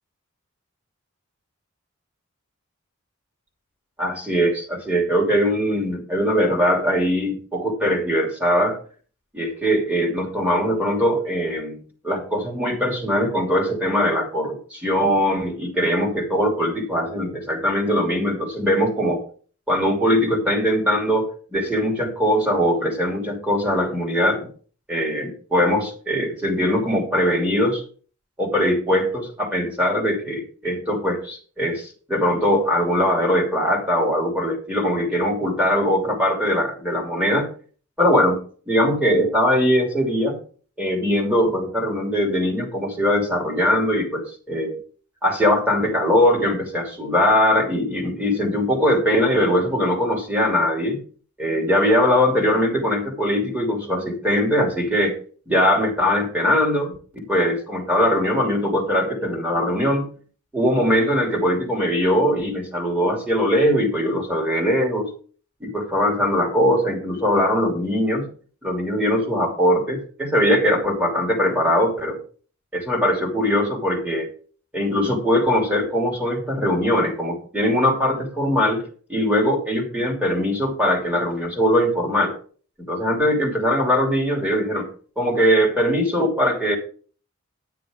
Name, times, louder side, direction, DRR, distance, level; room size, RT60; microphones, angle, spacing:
voice 1, 4.0-8.8 9.3-11.8 12.0-19.2 19.7-24.5 24.9-27.8 28.4-37.5 38.0-38.4 38.7-40.4 40.8-44.8 45.2-51.0 51.4-55.1 55.5-60.1 60.5-65.1 65.6-68.3 68.6-72.2 72.7-74.3 74.7-78.8 79.1-82.4 82.9-84.9 85.2-86.8, equal, 5° right, 0 dB, 2.8 m, -21 dB
10.0 x 9.3 x 3.7 m, 0.41 s
head